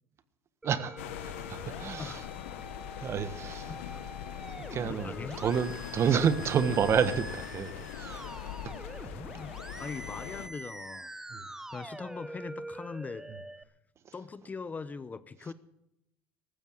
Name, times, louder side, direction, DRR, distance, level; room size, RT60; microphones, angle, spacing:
Musical instrument, 0.6-13.6, right 1 dB, 10° right, 0.7 m, -45 dB
voice 1, 0.6-2.2 3.0-3.7 4.7-8.7 11.3-11.5, right 7 dB, 45° right, 1.4 m, -30 dB
sound 1, 1.0-10.5, left 13 dB, 85° left, 0.9 m, -42 dB
voice 2, 2.0-2.6 3.0-3.1 3.7-4.1 4.8-5.4 9.3-11.1 11.5-13.3 14.1-15.5, left 4 dB, 25° left, 0.8 m, -41 dB
15.0 x 13.0 x 6.5 m
supercardioid pair, 85°, 7 cm